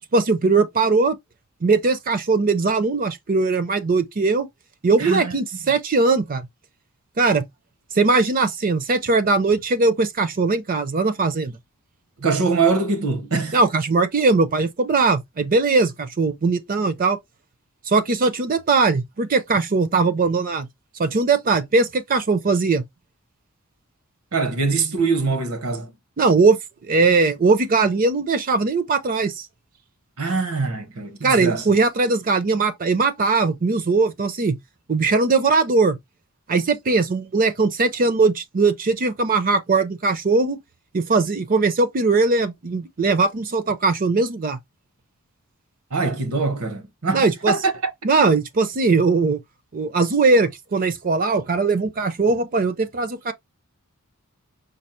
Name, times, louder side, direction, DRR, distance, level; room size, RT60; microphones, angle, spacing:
voice 1, 0.1-1.2 1.6-4.5 4.8-6.5 7.2-7.5 7.9-11.5 13.5-17.2 17.9-20.7 21.0-22.8 26.2-29.5 31.2-34.6 34.9-36.0 36.5-40.6 40.9-44.6 47.1-47.5 48.0-49.4 49.7-53.3, right 3 dB, 40° right, 0.5 m, -20 dB
voice 2, 5.0-5.3 12.2-13.6 24.3-25.9 30.2-31.7 45.9-47.9, right 4 dB, 70° right, 0.9 m, -23 dB
5.2 x 2.0 x 4.3 m
head